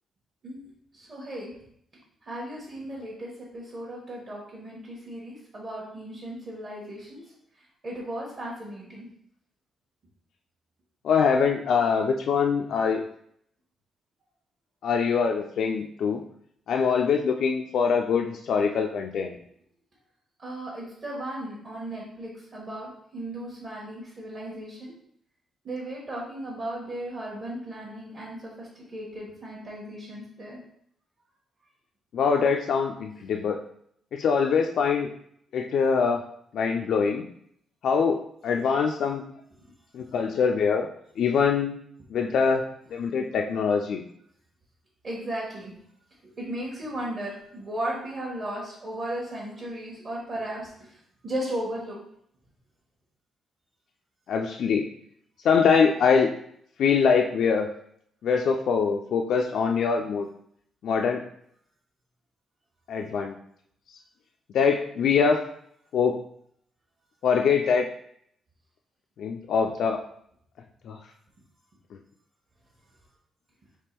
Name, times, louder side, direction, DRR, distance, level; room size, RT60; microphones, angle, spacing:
voice 1, 0.9-1.5 2.3-7.2 7.8-9.1 20.4-24.9 25.6-30.6 45.0-45.7 46.4-52.0, right 1 dB, 35° right, -5 dB, 1.0 m, -36 dB
voice 2, 11.0-13.0 14.8-16.2 16.7-19.3 32.1-33.6 34.1-35.1 35.5-36.2 36.5-37.3 37.8-39.2 39.9-40.9 41.2-41.8 42.1-42.6 42.9-44.0 54.3-54.9 55.4-56.3 56.8-57.7 58.2-60.3 60.8-61.2 62.9-63.3 64.5-65.5 65.9-66.2 67.2-67.9 69.2-70.0 70.9-71.0, left 6 dB, 65° left, 3 dB, 0.3 m, -23 dB
3.5 x 2.9 x 4.4 m, 0.68 s
cardioid pair, 155°, 0 cm